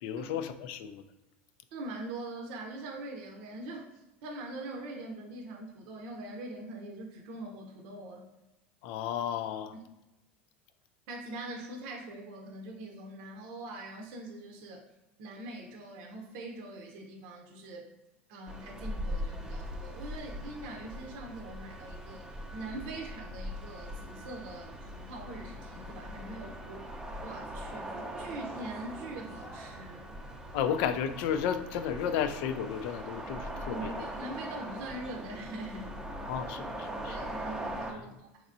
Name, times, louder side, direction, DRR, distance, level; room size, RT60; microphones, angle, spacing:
voice 1, 0.0-1.0 8.8-9.7 30.5-34.1 36.3-37.2 37.9-38.1, left 8 dB, 60° left, 11 dB, 0.4 m, -33 dB
voice 2, 1.7-8.3 9.7-9.8 11.1-14.9 15.2-17.9 18.3-26.9 27.2-30.1 33.7-36.0 37.1-38.5, right 2 dB, 60° right, 1 dB, 0.7 m, -43 dB
sound 1, 18.5-37.9, equal, 10° right, 0.6 m, -41 dB
4.2 x 3.0 x 2.5 m, 1.0 s
hypercardioid pair, 80°, 6 cm